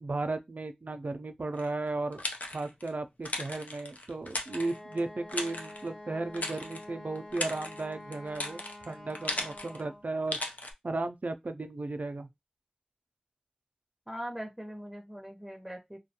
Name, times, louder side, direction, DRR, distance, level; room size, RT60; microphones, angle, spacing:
voice 1, 0.0-2.2 2.5-8.6 8.9-10.4 10.8-12.3, right 2 dB, 90° right, 0.4 m, -35 dB
sound 1, 1.6-2.9 3.3-5.0 5.3-5.9 6.3-6.9 7.2-9.8 10.3-10.7, left 2 dB, 75° left, 0.5 m, -37 dB
Wind instrument woodwind instrument, 4.4-10.1, left 1 dB, 30° left, 1.1 m, -47 dB
voice 2, 14.1-16.0, equal, 5° right, 0.7 m, -41 dB
2.4 x 2.2 x 2.7 m
wide cardioid pair, 45°, 3 cm